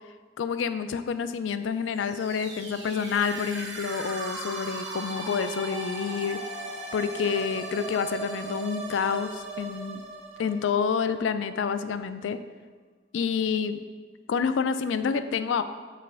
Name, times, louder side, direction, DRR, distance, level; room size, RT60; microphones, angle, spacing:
voice 1, 0.4-6.4 6.9-10.0 10.4-12.4 13.1-13.8 14.3-15.6, left 6 dB, 90° left, 11 dB, 0.3 m, -28 dB
sound 1, 1.9-11.6, right 2 dB, 80° right, 1.2 m, -38 dB
6.3 x 3.2 x 5.5 m, 1.4 s
head